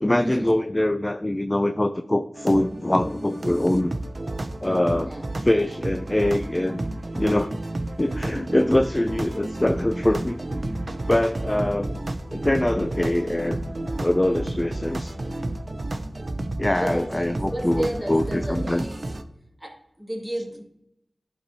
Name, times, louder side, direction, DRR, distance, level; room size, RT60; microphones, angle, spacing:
voice 1, 0.0-3.9 4.6-5.1 5.4-6.8 7.1-7.5 8.0-10.6 11.1-11.9 12.3-13.6 14.0-15.1 16.6-18.8, left 1 dB, 25° left, 9 dB, 0.3 m, -23 dB
sound 1, 2.4-19.2, right 1 dB, 55° right, 0.6 m, -31 dB
voice 2, 8.2-8.6 16.8-17.0 17.5-19.1 19.6-20.6, right 1 dB, 5° left, -1 dB, 2.1 m, -32 dB
11.0 x 4.4 x 2.7 m, 0.79 s
cardioid pair, 45°, 0 cm